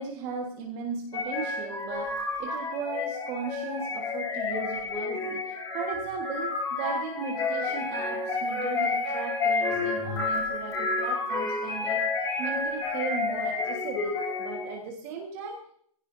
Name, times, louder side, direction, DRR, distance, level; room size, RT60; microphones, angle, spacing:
voice 1, 0.0-12.0 12.4-15.7, right 4 dB, 20° right, 0 dB, 1.6 m, -37 dB
sound 1, 1.1-14.8, left 3 dB, 15° left, 6.2 m, -30 dB
18.5 x 16.0 x 2.7 m, 0.63 s
hypercardioid pair, 170°, 19 cm